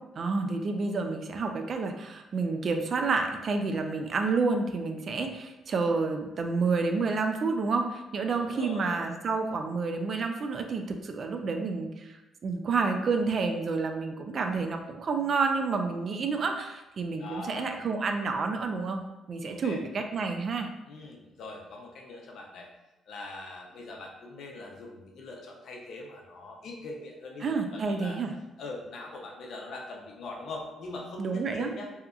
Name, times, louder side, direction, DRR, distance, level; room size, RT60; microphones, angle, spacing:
voice 1, 0.2-12.2 12.4-19.0 19.3-20.7 27.4-28.3 31.2-31.7, right 4 dB, 50° right, 5 dB, 0.3 m, -29 dB
voice 2, 8.3-9.0 17.2-17.8 19.5-19.8 20.9-22.7 23.1-28.2 28.6-31.9, left 2 dB, 70° left, 0 dB, 0.5 m, -42 dB
2.8 x 2.3 x 2.3 m, 0.99 s
cardioid pair, 90°, 0 cm